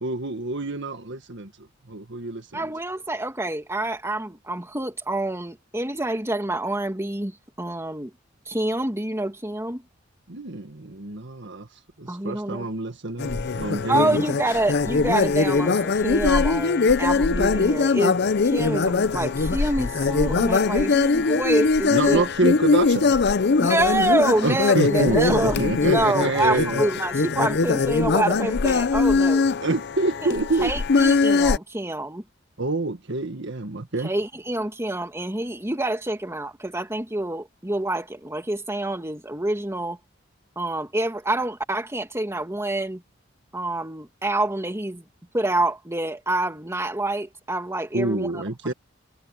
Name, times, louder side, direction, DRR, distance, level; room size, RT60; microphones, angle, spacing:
voice 1, 0.0-1.5 1.9-2.6 10.3-11.7 12.0-14.3 21.9-23.1 24.4-26.8 29.6-30.7 32.6-34.1 47.9-48.7, right 2 dB, 65° right, 1.8 m, -27 dB
voice 2, 2.5-8.1 8.5-9.8 12.1-12.7 13.9-22.2 23.6-29.4 30.6-32.2 34.0-40.0 40.6-43.0 43.5-45.0 45.3-48.7, right 1 dB, 15° right, 2.5 m, -27 dB
sound 1, 13.2-31.6, left 4 dB, 55° left, 0.6 m, -21 dB
head